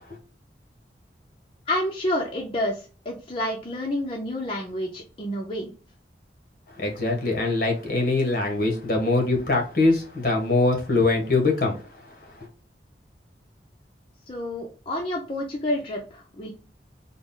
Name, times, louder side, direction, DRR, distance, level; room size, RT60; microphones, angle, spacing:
voice 1, 1.7-5.7 14.3-16.5, left 1 dB, 30° left, 0.6 m, -29 dB
voice 2, 6.8-11.8 12.4-12.5, left 2 dB, 55° left, 1.0 m, -23 dB
3.7 x 2.1 x 3.7 m
head